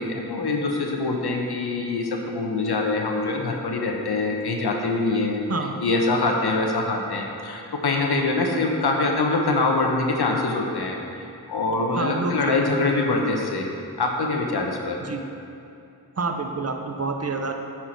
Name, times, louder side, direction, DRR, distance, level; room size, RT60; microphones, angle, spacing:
voice 1, 0.0-5.4 5.8-11.0 11.5-13.7 14.0-15.0, left 3 dB, 75° left, 1 dB, 0.9 m, -24 dB
voice 2, 11.9-12.5 15.0-15.2 16.2-17.5, right 4 dB, 40° right, 4 dB, 0.7 m, -28 dB
8.4 x 4.6 x 4.5 m, 2.6 s
cardioid pair, 50°, 39 cm